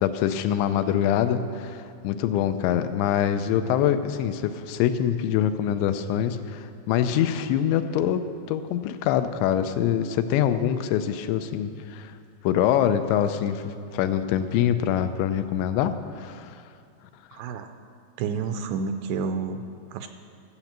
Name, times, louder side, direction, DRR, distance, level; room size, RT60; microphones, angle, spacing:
voice 1, 0.0-12.1 12.4-16.6 17.3-17.4, left 10 dB, 85° left, 9 dB, 2.8 m, -24 dB
voice 2, 17.3-17.7 18.2-19.7 19.9-20.1, right 5 dB, 80° right, 7 dB, 2.6 m, -29 dB
13.0 x 7.9 x 7.3 m, 2.4 s
omnidirectional pair, 5.2 m